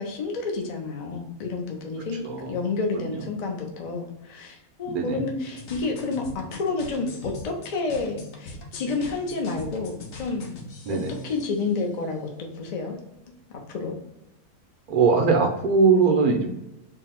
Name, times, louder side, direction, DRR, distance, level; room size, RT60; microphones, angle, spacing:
voice 1, 0.0-10.5 10.9-11.0 11.2-13.0 13.7-14.0, left 3 dB, 85° left, 1 dB, 0.3 m, -30 dB
voice 2, 2.2-2.6 3.0-3.2 4.9-5.2 10.9-11.3 14.9-16.6, right 4 dB, 70° right, 2 dB, 0.4 m, -21 dB
sound 1, 5.6-11.8, left 2 dB, 65° left, 1.0 m, -42 dB
3.8 x 2.0 x 4.3 m, 0.90 s
omnidirectional pair, 1.6 m